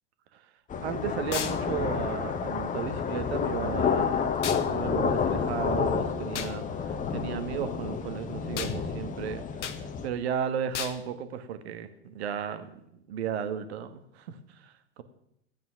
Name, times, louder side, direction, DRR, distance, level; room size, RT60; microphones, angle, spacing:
sound 1, 0.7-10.1, left 6 dB, 20° left, 1.1 m, -30 dB
voice 1, 0.8-4.3 4.6-9.8 10.0-12.8 13.1-14.7, right 8 dB, 55° right, 10 dB, 1.5 m, -34 dB
sound 2, 1.3-1.6 4.4-4.7 6.3-6.5 8.6-8.8 9.6-9.8 10.7-11.0, left 8 dB, 65° left, 1.2 m, -34 dB
15.0 x 9.4 x 5.7 m, 0.77 s
figure-of-eight pair, 85°, 38 cm